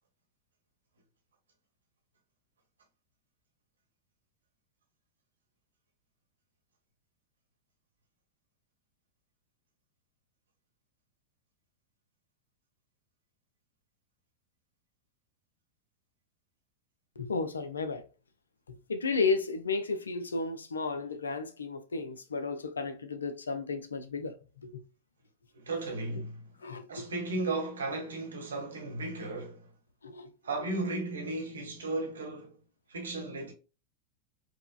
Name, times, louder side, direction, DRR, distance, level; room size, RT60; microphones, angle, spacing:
voice 1, 17.2-18.0 18.7-24.8 26.6-27.1 30.0-30.3 30.6-30.7, left 4 dB, 75° left, 0.4 m, -33 dB
voice 2, 25.5-26.5 26.9-29.7 30.4-32.6 32.9-33.5, right 2 dB, 70° right, 0.9 m, -35 dB
4.5 x 2.1 x 2.3 m
figure-of-eight pair, 90°, 0 cm